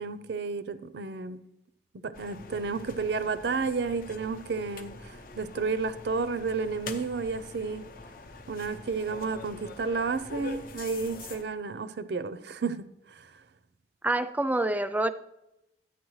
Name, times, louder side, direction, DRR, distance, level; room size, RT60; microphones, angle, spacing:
voice 1, 0.0-1.4 2.0-7.9 8.5-13.3, right 4 dB, 65° right, 14 dB, 0.5 m, -32 dB
sound 1, 2.1-11.4, left 3 dB, 50° left, 0.7 m, -44 dB
voice 2, 14.0-15.1, right 2 dB, 10° right, 10 dB, 0.4 m, -26 dB
13.5 x 9.2 x 3.2 m, 0.89 s
head